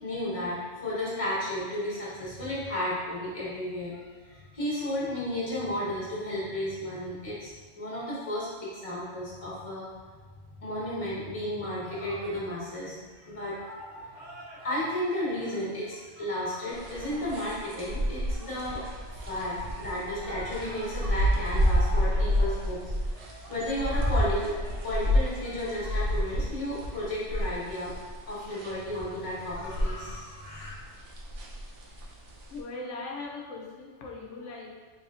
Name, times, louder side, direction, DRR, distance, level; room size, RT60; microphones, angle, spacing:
voice 1, 0.0-9.9 10.6-13.9 14.6-18.8 19.1-22.9 23.2-27.9 28.3-30.7, left 1 dB, 30° left, -7 dB, 1.0 m, -33 dB
sound 1, 11.8-25.9, right 1 dB, 50° right, 1.0 m, -48 dB
sound 2, 16.7-30.2 30.4-32.6, equal, 80° right, 1.0 m, -30 dB
voice 2, 32.3-34.7, left 3 dB, 85° left, -1 dB, 0.9 m, -39 dB
4.1 x 3.3 x 2.3 m, 1.4 s
omnidirectional pair, 1.2 m